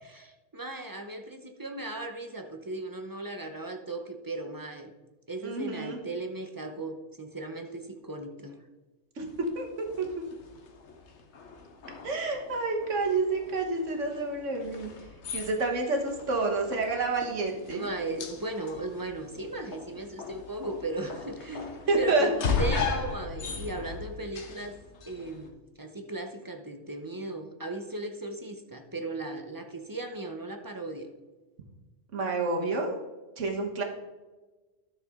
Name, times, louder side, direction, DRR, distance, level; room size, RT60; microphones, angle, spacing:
voice 1, 0.2-4.9 5.3-8.5 17.7-24.8 25.1-31.1, right 2 dB, 20° right, 5 dB, 0.6 m, -37 dB
voice 2, 5.4-6.0 9.2-9.3 9.6-9.7 10.0-10.2 12.0-17.9 21.9-22.3 32.1-33.0 33.4-33.8, right 3 dB, 70° right, 2 dB, 1.7 m, -29 dB
sound 1, 9.3-25.5, left 5 dB, 65° left, 1.3 m, -38 dB
12.0 x 6.6 x 3.7 m, 1.2 s
omnidirectional pair, 1.3 m